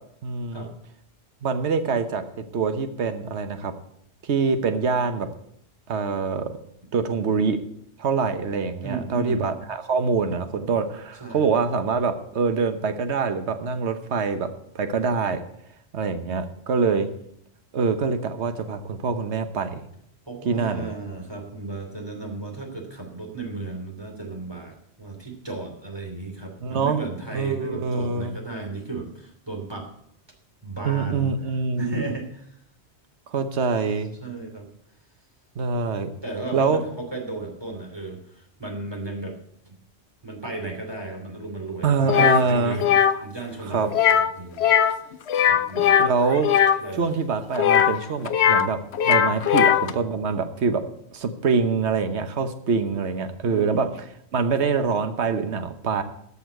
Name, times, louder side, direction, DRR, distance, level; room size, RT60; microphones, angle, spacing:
voice 1, 0.2-0.7 1.4-2.2 2.5-3.7 4.2-5.3 5.9-6.6 6.9-7.6 8.0-14.5 14.7-15.4 15.9-17.1 17.7-19.9 20.4-20.9 26.6-27.0 27.3-28.3 30.8-32.0 33.3-34.1 35.6-36.1 36.5-36.8 41.8-42.8 43.7-43.9 45.7-46.5 47.0-48.8 49.0-50.8 51.1-56.0, right 5 dB, 80° right, 9 dB, 1.3 m, -25 dB
voice 2, 8.8-9.5 11.2-11.5 20.3-29.9 30.6-32.6 33.7-33.9 34.2-34.7 36.2-39.4 40.2-42.9 43.2-44.7 45.4-46.0 46.8-47.1 53.5-53.9, right 3 dB, 20° right, 1 dB, 3.0 m, -34 dB
sound 1, 42.1-42.4 42.8-43.1 43.9-44.3 44.6-45.0 45.3-46.8 47.5-48.7 48.9-49.9, left 9 dB, 75° left, 1.0 m, -19 dB
14.0 x 5.7 x 8.1 m, 0.73 s
omnidirectional pair, 1.1 m